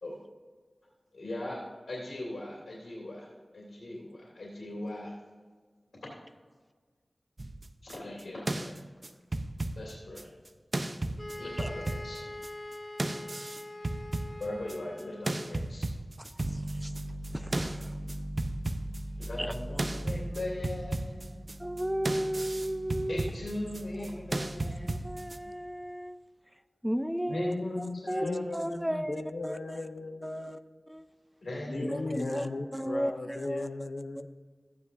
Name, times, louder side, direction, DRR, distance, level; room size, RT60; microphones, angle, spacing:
voice 1, 1.1-3.3 3.5-5.1 6.0-6.1 7.8-8.7 9.8-10.3 11.3-12.2 14.4-15.9 19.2-21.4 23.1-24.9 27.3-28.7 31.4-32.5, left 1 dB, 90° left, -4 dB, 2.7 m, -39 dB
sound 1, 7.4-10.5 10.7-12.7 13.0-15.0 15.3-25.4, right 2 dB, 50° right, 0.7 m, -35 dB
sound 2, 11.2-15.6, left 1 dB, 30° left, 1.2 m, -43 dB
voice 2, 16.5-16.9 17.3-17.9 19.4-19.5 21.6-23.3 24.4-26.2 26.8-29.2 29.4-29.9 30.2-30.6 31.8-33.7, equal, 5° right, 10 dB, 0.6 m, -34 dB
voice 3, 27.3-30.6 31.7-34.3, left 2 dB, 70° left, 3 dB, 0.7 m, -38 dB
14.5 x 9.6 x 2.7 m, 1.5 s
wide cardioid pair, 55°, 0 cm